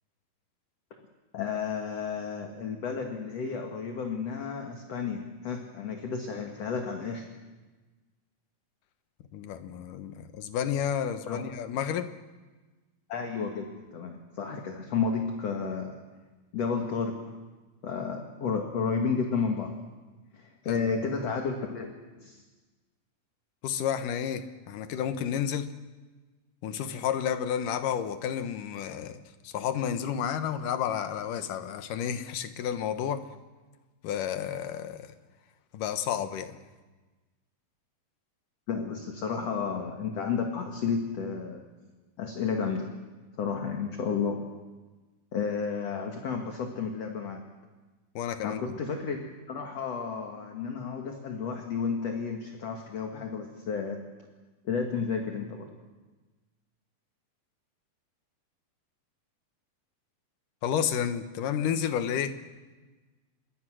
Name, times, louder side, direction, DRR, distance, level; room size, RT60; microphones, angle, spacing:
voice 1, 1.3-7.3 11.3-11.4 13.1-16.0 16.5-17.3 17.8-19.7 20.3-21.9 22.2-22.4 38.7-41.6 42.2-42.9 43.4-44.4 45.3-47.4 48.4-54.0 54.6-55.7, left 5 dB, 50° left, 3 dB, 2.6 m, -32 dB
voice 2, 9.3-12.1 20.7-20.8 23.6-25.7 26.6-29.2 29.4-33.2 34.0-35.1 35.7-36.6 48.2-48.8 60.6-62.4, left 9 dB, 70° left, 9 dB, 2.6 m, -31 dB
27.5 x 22.0 x 6.3 m, 1.3 s
omnidirectional pair, 4.2 m